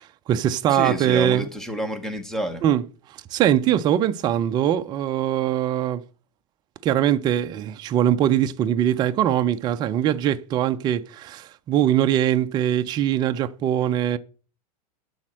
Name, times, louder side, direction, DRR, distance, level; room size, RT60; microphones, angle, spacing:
voice 1, 0.0-1.5 2.6-2.8 3.1-6.0 6.8-14.2, right 11 dB, 20° right, 0.4 m, -22 dB
voice 2, 0.7-2.6, equal, ahead, 1.1 m, -29 dB
12.0 x 4.2 x 7.4 m
supercardioid pair, 155°, 20 cm